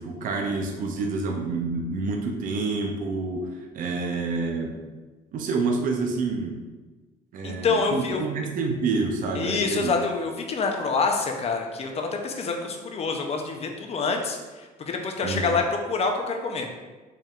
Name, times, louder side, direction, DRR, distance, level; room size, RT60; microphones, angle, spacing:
voice 1, 0.0-4.7 5.3-6.6 7.3-9.9 15.2-15.5, right 3 dB, 55° right, 2 dB, 0.5 m, -28 dB
voice 2, 7.4-8.2 9.4-16.7, left 4 dB, 35° left, 3 dB, 0.6 m, -27 dB
4.5 x 3.5 x 2.4 m, 1.3 s
cardioid pair, 110°, 17 cm